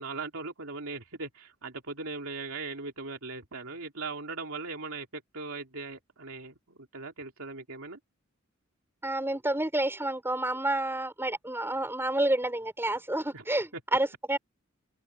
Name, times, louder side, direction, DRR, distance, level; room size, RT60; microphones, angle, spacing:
voice 1, 0.0-8.0 13.3-13.4, right 3 dB, 75° right, 3.1 m, -39 dB
voice 2, 9.0-14.4, right 1 dB, 10° right, 6.7 m, -29 dB
open air
head